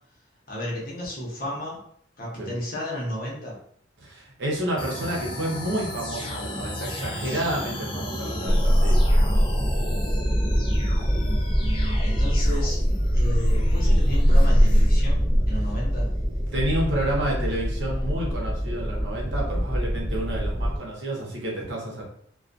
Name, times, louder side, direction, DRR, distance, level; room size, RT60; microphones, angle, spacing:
voice 1, 0.5-1.8 2.2-3.6 11.6-12.8 13.1-16.1, left 1 dB, 50° left, -4 dB, 0.8 m, -33 dB
voice 2, 4.0-9.0 16.5-22.0, right 1 dB, 80° right, -2 dB, 0.8 m, -30 dB
sound 1, 4.8-15.0, left 1 dB, 25° left, 0.4 m, -34 dB
sound 2, 8.5-9.9 10.2-15.6 17.3-17.8, equal, 35° right, 0.8 m, -21 dB
sound 3, 8.9-20.8, equal, 10° left, 1.0 m, -26 dB
2.3 x 2.2 x 2.5 m, 0.64 s
head